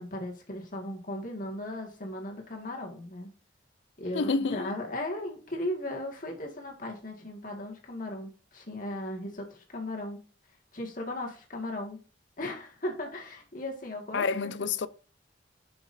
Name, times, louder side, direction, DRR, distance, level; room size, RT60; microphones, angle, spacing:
voice 1, 0.0-3.3 4.0-10.2 10.7-12.0 12.4-14.5, left 1 dB, 45° left, 1.9 m, -37 dB
voice 2, 4.1-4.7 14.1-14.9, left 4 dB, 75° left, 0.5 m, -28 dB
8.9 x 6.1 x 2.7 m
head